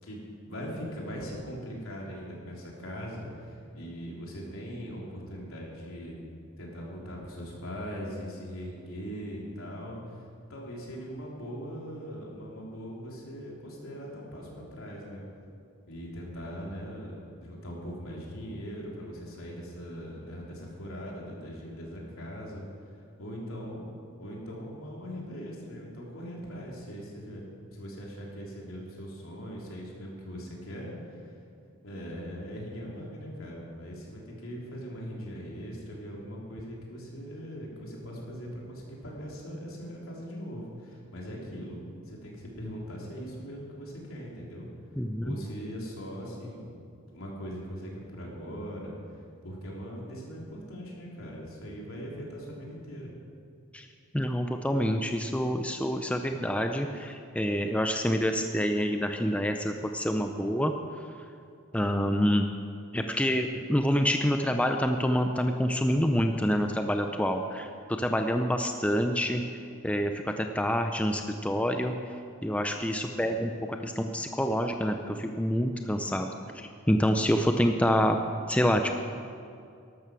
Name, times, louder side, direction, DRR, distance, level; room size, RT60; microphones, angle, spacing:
voice 1, 0.0-6.2 6.6-10.2 10.5-15.2 15.9-22.6 23.2-23.9 24.2-27.4 27.7-31.3 31.8-41.8 42.0-44.7 45.2-46.7 47.1-48.9 49.4-53.1 72.9-73.4, equal, 80° left, -3 dB, 3.6 m, -40 dB
voice 2, 45.0-45.3 53.7-53.8 54.1-60.7 61.7-62.5 62.9-69.4 69.8-71.9 72.4-76.3 76.6-78.2 78.5-78.9, equal, 5° left, 5 dB, 0.5 m, -27 dB
12.5 x 12.5 x 6.2 m, 2.4 s
head